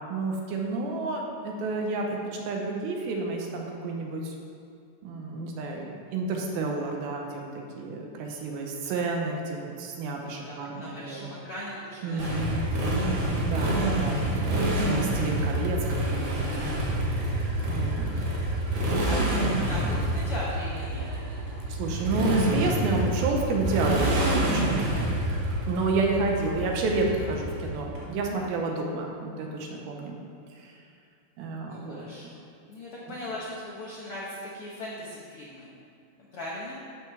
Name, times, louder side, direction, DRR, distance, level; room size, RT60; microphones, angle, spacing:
voice 1, 0.1-2.2 2.4-4.4 5.0-11.2 12.0-12.7 13.2-16.5 17.7-18.1 21.7-24.9 25.7-30.2 30.5-30.8 31.4-32.0, right 3 dB, 80° right, 0 dB, 2.8 m, -30 dB
voice 2, 10.2-12.5 12.8-13.3 18.1-18.6 19.1-21.1 31.7-32.4 32.7-35.7 36.3-36.8, left 1 dB, 80° left, -6 dB, 1.3 m, -39 dB
Motorcycle, 12.2-28.0, right 1 dB, 55° right, 1.8 m, -27 dB
11.5 x 8.1 x 3.4 m, 2.4 s
omnidirectional pair, 4.3 m